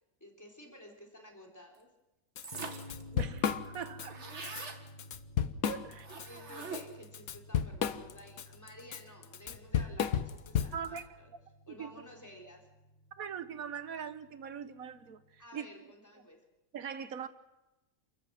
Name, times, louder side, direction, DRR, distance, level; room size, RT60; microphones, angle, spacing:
voice 1, 0.2-1.9 6.2-11.3 11.7-12.7 15.4-16.4, equal, 10° left, 3.6 m, -53 dB
Drum kit / Drum, 2.4-2.5 2.8-4.1 4.4-4.6 5.0-6.3 6.6-11.0, left 8 dB, 85° left, 1.4 m, -33 dB
sound 1, 2.4-3.0 3.4-3.5 3.6-4.8 6.0-7.1, right 3 dB, 55° right, 2.2 m, -43 dB
sound 2, 2.5-15.4, left 1 dB, 30° left, 1.4 m, -54 dB
voice 2, 3.1-4.2 5.6-6.1 10.7-11.0 11.7-11.9 13.2-15.7 16.7-17.3, right 7 dB, 85° right, 1.6 m, -41 dB
29.0 x 14.0 x 7.7 m
omnidirectional pair, 1.4 m